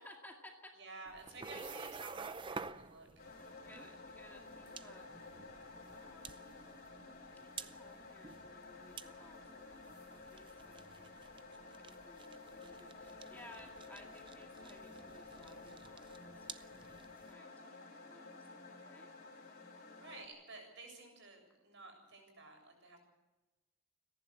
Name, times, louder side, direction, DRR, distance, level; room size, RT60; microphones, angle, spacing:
voice 1, 0.0-0.8 3.6-5.1 5.9-6.4 7.4-16.7 17.3-17.5 18.1-19.1, left 1 dB, 10° left, 1 dB, 2.1 m, -59 dB
voice 2, 0.8-3.3 20.0-23.0, right 3 dB, 60° right, 3 dB, 7.4 m, -53 dB
sound 1, 1.1-17.3, right 4 dB, 25° right, 0.6 m, -51 dB
sound 2, 3.2-20.3, left 3 dB, 45° left, 4.3 m, -53 dB
29.5 x 11.0 x 8.5 m, 1.1 s
head